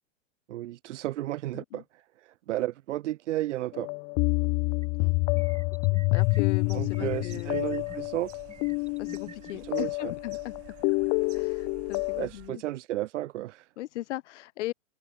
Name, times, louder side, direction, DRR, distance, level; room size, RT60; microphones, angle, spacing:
voice 1, 0.5-3.9 6.7-8.3 9.6-10.1 12.2-13.7, right 15 dB, 70° right, 1.9 m, -33 dB
sound 1, 3.7-12.3, left 33 dB, 25° left, 0.4 m, -28 dB
sound 2, 4.8-4.9 5.3-6.4 6.9-8.0 8.5-9.5, right 7 dB, 15° right, 6.5 m, -48 dB
voice 2, 6.1-7.6 9.0-10.5 11.3-12.6 13.8-14.7, left 16 dB, 70° left, 1.9 m, -38 dB
sound 3, 6.2-12.5, right 20 dB, 40° right, 5.8 m, -52 dB
supercardioid pair, 145°, 37 cm